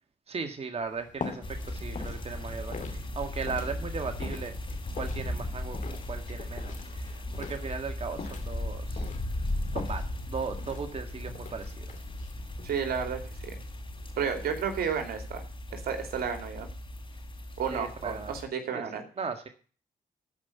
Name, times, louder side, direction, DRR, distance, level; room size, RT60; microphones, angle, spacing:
voice 1, 0.3-4.6 5.0-5.8 6.1-9.1 9.7-11.9 17.7-18.3 18.7-19.5, right 5 dB, 40° right, 6 dB, 1.7 m, -37 dB
sound 1, 0.8-14.8, left 5 dB, 55° left, 2.6 m, -45 dB
sound 2, 1.4-18.4, left 1 dB, 35° left, 3.9 m, -37 dB
voice 2, 12.6-13.6 14.2-15.4 15.7-16.7 17.6-19.0, right 7 dB, 75° right, 5 dB, 2.7 m, -32 dB
13.0 x 5.5 x 7.1 m, 0.40 s
cardioid pair, 70°, 16 cm